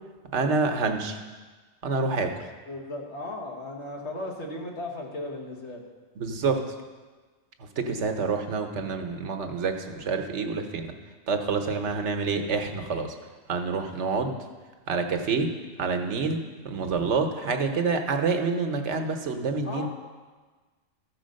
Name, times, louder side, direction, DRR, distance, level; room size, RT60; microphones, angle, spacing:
voice 1, 0.3-1.2 1.8-2.5 6.2-6.7 7.6-10.9 11.3-13.1 13.5-14.4 14.9-15.5 15.8-19.9, right 4 dB, 90° right, 5 dB, 1.2 m, -27 dB
voice 2, 2.7-5.8 19.6-19.9, left 2 dB, 75° left, 0 dB, 1.8 m, -36 dB
13.5 x 4.8 x 6.4 m, 1.4 s
omnidirectional pair, 1.2 m